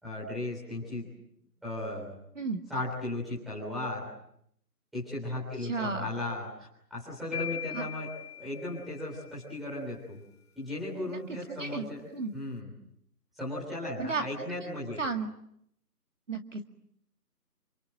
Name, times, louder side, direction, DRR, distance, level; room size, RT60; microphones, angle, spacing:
voice 1, 0.0-1.1 1.6-2.1 2.7-4.1 4.9-10.2 10.6-12.1 12.3-12.7 13.4-15.0, left 1 dB, ahead, -8 dB, 3.4 m, -36 dB
voice 2, 5.6-6.1 7.7-7.9 11.1-12.3 14.0-14.2 14.6-14.7 15.0-15.3 16.3-16.6, right 4 dB, 50° right, 6 dB, 2.1 m, -34 dB
sound 1, 7.3-9.4, left 11 dB, 50° left, 4.6 m, -40 dB
29.0 x 25.0 x 7.7 m, 0.74 s
figure-of-eight pair, 170°, 47 cm